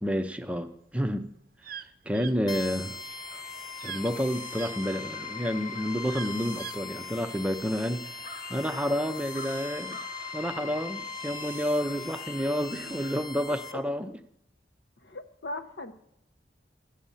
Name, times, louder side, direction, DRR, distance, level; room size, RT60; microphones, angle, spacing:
voice 1, 0.0-1.3 1.7-3.0 3.3-3.4 3.8-8.1 8.5-10.0 10.3-14.1, equal, 5° right, 8 dB, 0.5 m, -30 dB
sound 1, 0.9-4.7 5.2-6.9, right 9 dB, 50° right, 0.5 m, -42 dB
sound 2, 2.5-13.2, left 3 dB, 50° left, 1.0 m, -47 dB
sound 3, 2.5-13.7, left 4 dB, 25° left, 1.0 m, -40 dB
voice 2, 15.0-15.9, left 2 dB, 85° left, 8 dB, 1.0 m, -39 dB
15.0 x 8.5 x 5.5 m, 0.79 s
head